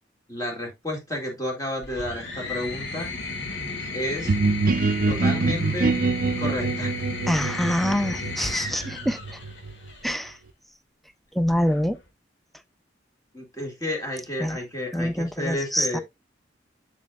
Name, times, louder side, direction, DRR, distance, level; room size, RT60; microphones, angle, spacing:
voice 1, 0.3-3.1 3.9-4.4 5.1-6.0 6.4-7.0 8.8-8.9 13.3-16.0, left 1 dB, 20° left, 2.0 m, -31 dB
sound 1, 1.8-10.2 11.4-12.1, left 3 dB, 70° left, 2.2 m, -34 dB
sound 2, 4.3-9.9, right 3 dB, 55° right, 0.6 m, -25 dB
voice 2, 7.3-9.2 10.0-10.4 11.3-12.0 14.4-14.6 14.9-16.0, equal, ahead, 0.5 m, -25 dB
7.6 x 6.4 x 2.3 m
head